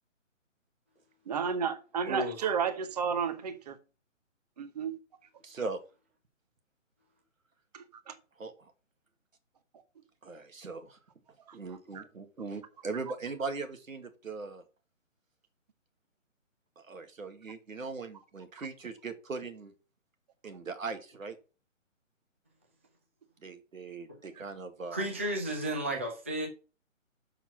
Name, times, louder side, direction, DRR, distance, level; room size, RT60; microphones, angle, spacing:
voice 1, 1.3-3.7 4.6-4.9 7.7-8.1 11.5-11.6 11.9-12.0, right 6 dB, 30° right, 1.0 m, -32 dB
voice 2, 5.4-5.8 8.4-8.7 10.2-11.0 11.5-14.6 16.8-19.7 20.4-21.4 23.4-25.1, right 4 dB, 85° right, 2.1 m, -40 dB
voice 3, 24.9-26.5, right 1 dB, 10° right, 0.5 m, -33 dB
6.8 x 5.9 x 5.8 m
hypercardioid pair, 160°, 39 cm